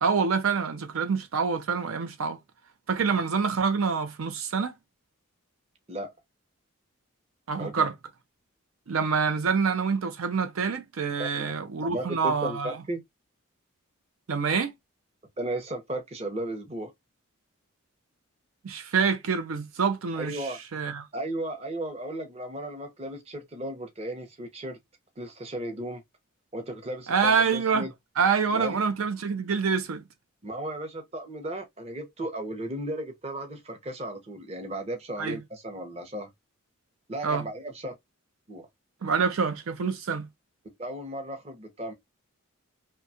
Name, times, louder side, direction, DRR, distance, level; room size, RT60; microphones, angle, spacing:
voice 1, 0.0-2.4 2.9-4.7 7.5-7.9 8.9-12.7 14.3-14.7 18.6-21.1 27.1-27.9 28.2-30.0 35.2-35.4 37.2-37.4 39.0-40.3, right 5 dB, 75° right, 0.5 m, -26 dB
voice 2, 11.2-11.5 11.8-13.0 15.4-16.9 20.1-20.6 21.1-24.8 25.2-26.0 26.5-27.9 28.5-28.8 30.4-36.3 37.1-37.9 38.5-38.7 40.8-41.9, right 1 dB, 30° right, 0.6 m, -35 dB
2.7 x 2.2 x 2.6 m
head